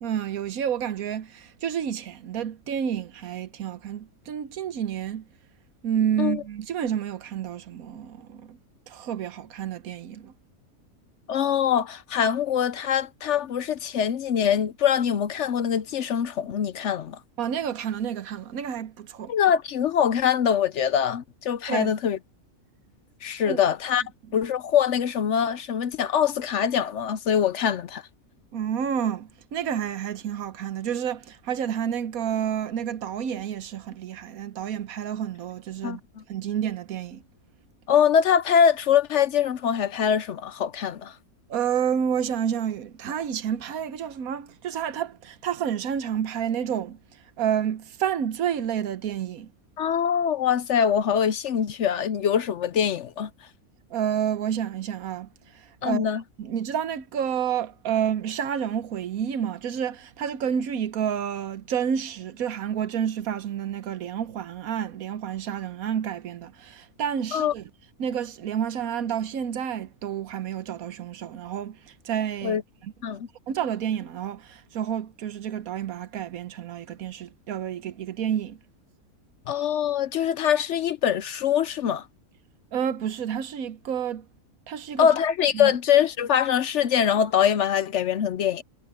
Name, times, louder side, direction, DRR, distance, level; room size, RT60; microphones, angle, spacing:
voice 1, 0.0-5.3 5.8-8.6 8.9-10.3 17.4-19.3 21.7-21.9 23.4-23.6 28.5-36.0 36.3-37.2 41.5-47.0 47.4-49.5 53.9-55.3 55.5-56.0 56.4-67.7 68.0-73.2 73.5-78.6 82.7-84.3 84.7-85.1 85.5-85.7, right 8 dB, 75° right, 1.3 m, -29 dB
voice 2, 11.3-17.2 19.3-22.2 23.2-24.0 24.3-28.0 35.8-36.2 37.9-41.1 49.8-53.3 55.8-56.2 67.3-67.5 72.4-72.6 73.0-73.3 79.5-82.1 85.0-88.6, left 8 dB, 60° left, 0.9 m, -23 dB
omnidirectional pair, 1.5 m